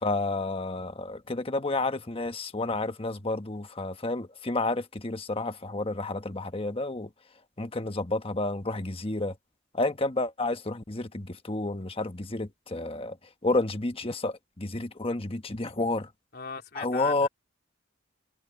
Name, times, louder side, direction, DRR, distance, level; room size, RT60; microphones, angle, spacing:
voice 1, 0.0-7.1 7.6-9.3 9.7-13.2 13.4-16.1 16.7-17.3, left 2 dB, 30° left, 1.3 m, -30 dB
voice 2, 16.3-17.3, left 5 dB, 50° left, 3.7 m, -39 dB
head